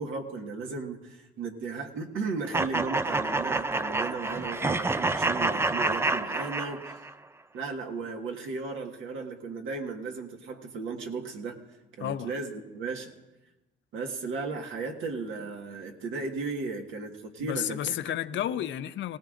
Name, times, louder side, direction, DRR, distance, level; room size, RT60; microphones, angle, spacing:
voice 1, 0.0-7.0 7.5-11.6 12.0-13.1 13.9-18.0 18.5-18.6, right 4 dB, 85° right, 1.6 m, -35 dB
sound 1, 2.5-7.1, right 2 dB, 10° right, 0.4 m, -28 dB
voice 2, 12.0-12.3 17.4-19.2, left 11 dB, 70° left, 0.6 m, -32 dB
18.0 x 18.0 x 2.5 m
cardioid pair, 90°, 20 cm